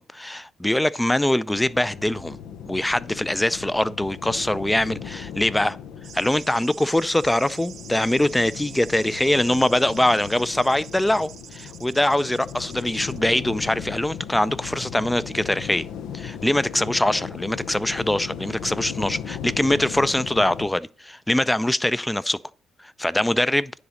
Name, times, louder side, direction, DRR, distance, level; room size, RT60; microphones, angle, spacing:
voice 1, 0.0-2.4 2.7-5.8 6.1-15.9 16.1-22.4 22.8-23.7, left 1 dB, 10° left, 0.4 m, -23 dB
sound 1, 1.5-20.7, left 8 dB, 85° left, 0.7 m, -37 dB
sound 2, 6.0-13.2, right 9 dB, 65° right, 0.6 m, -45 dB
10.0 x 4.0 x 6.3 m
cardioid pair, 90°, 0 cm